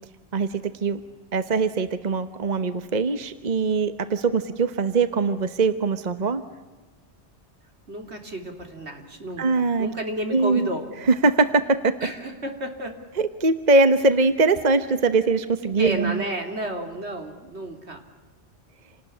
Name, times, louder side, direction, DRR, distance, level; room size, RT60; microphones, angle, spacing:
voice 1, 0.3-1.0 1.3-6.4 9.4-9.9 10.3-10.7 11.0-11.9 13.2-16.2, right 3 dB, 40° right, 11 dB, 1.1 m, -22 dB
voice 2, 7.9-10.8 12.0-13.0 15.6-18.0, right 1 dB, 75° right, 4 dB, 3.6 m, -32 dB
28.0 x 19.0 x 9.9 m, 1.2 s
omnidirectional pair, 1.1 m